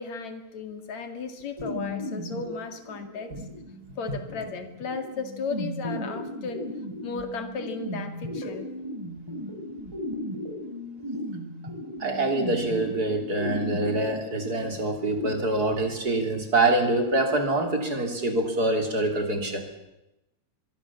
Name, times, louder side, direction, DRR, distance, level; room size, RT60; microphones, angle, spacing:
voice 1, 0.0-3.4 4.0-6.7 7.0-8.7, left 4 dB, 65° left, 8 dB, 3.4 m, -35 dB
sound 1, 1.6-15.3, left 1 dB, 10° right, 3.6 m, -36 dB
voice 2, 12.0-19.6, right 2 dB, 30° right, 5 dB, 3.4 m, -25 dB
23.5 x 23.0 x 7.3 m, 0.91 s
omnidirectional pair, 3.5 m